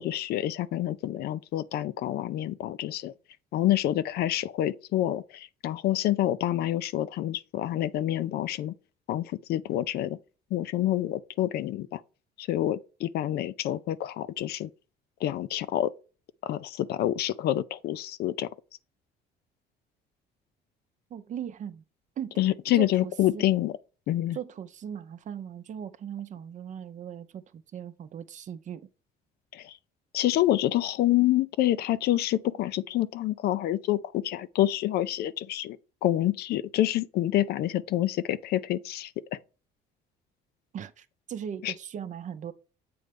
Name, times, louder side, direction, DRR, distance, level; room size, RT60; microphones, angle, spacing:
voice 1, 0.0-3.1 3.5-8.7 9.1-10.2 10.5-12.0 12.4-14.7 15.2-15.9 16.4-18.5 22.4-23.7 24.1-24.4 29.5-29.7 30.1-35.8 36.0-39.4 41.6-41.7, left 13 dB, 70° left, 0.5 m, -27 dB
voice 2, 21.1-21.8 22.2-22.4 22.8-23.4 24.3-28.9 40.7-42.5, right 9 dB, 45° right, 0.6 m, -38 dB
7.7 x 3.2 x 5.2 m
cardioid pair, 110°, 17 cm